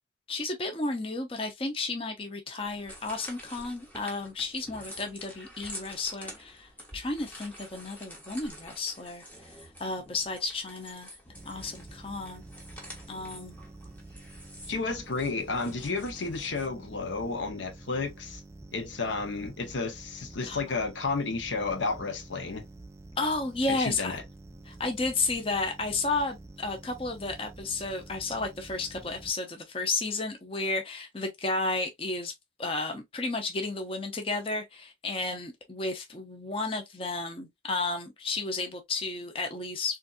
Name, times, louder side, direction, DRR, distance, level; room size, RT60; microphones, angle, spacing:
voice 1, 0.3-9.2 9.8-11.1 11.5-12.4 13.1-13.6 20.4-20.8 23.2-24.2 24.7-32.3 32.6-40.0, left 3 dB, 30° left, 0.6 m, -32 dB
sound 1, 2.6-16.7, equal, 10° left, 0.9 m, -48 dB
sound 2, 11.4-29.3, right 2 dB, 15° right, 0.4 m, -48 dB
voice 2, 14.7-18.4 18.7-22.6 23.7-24.2, left 4 dB, 90° left, 0.8 m, -32 dB
3.9 x 2.6 x 2.2 m
head